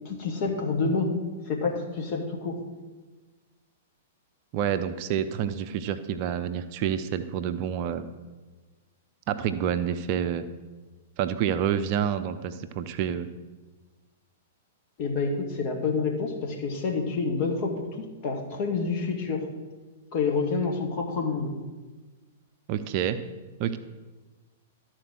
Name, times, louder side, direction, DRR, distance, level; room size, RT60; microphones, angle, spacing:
voice 1, 0.1-1.2 1.5-2.6 15.0-19.5 20.1-21.5, left 4 dB, 40° left, 2 dB, 1.9 m, -28 dB
voice 2, 4.5-8.0 9.3-10.4 11.2-13.3 22.7-23.2 23.6-23.8, right 9 dB, 40° right, 10 dB, 0.5 m, -28 dB
12.5 x 4.5 x 6.3 m, 1.3 s
figure-of-eight pair, 105°, 0 cm